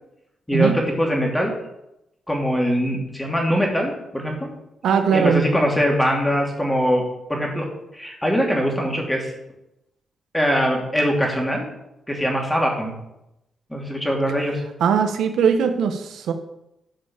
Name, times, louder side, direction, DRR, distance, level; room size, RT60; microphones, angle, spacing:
voice 1, 0.5-1.5 2.3-4.5 5.1-7.0 7.3-7.7 7.9-9.3 10.3-11.7 12.1-12.9 13.7-14.6, equal, 5° left, 0 dB, 2.8 m, -22 dB
voice 2, 4.8-5.4 14.8-16.3, right 6 dB, 90° right, 7 dB, 1.1 m, -19 dB
10.0 x 5.4 x 7.2 m, 0.86 s
cardioid pair, 110°, 0 cm